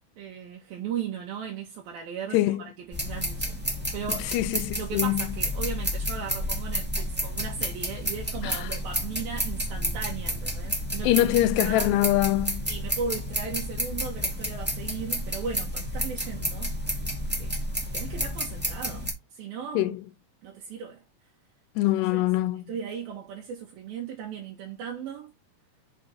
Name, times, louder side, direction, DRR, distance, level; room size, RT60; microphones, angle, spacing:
voice 1, 0.2-3.6 3.9-4.3 4.8-12.0 12.7-16.7 17.4-17.5 17.9-19.9 20.4-21.0 21.9-22.2 22.7-25.3, right 6 dB, 70° right, 2.9 m, -37 dB
sound 1, 2.9-19.1, equal, 10° right, 0.4 m, -31 dB
voice 2, 4.3-5.3 8.4-8.7 11.0-12.7 19.7-20.0 21.8-22.6, left 15 dB, 90° left, 2.7 m, -24 dB
6.7 x 4.4 x 4.1 m
omnidirectional pair, 4.7 m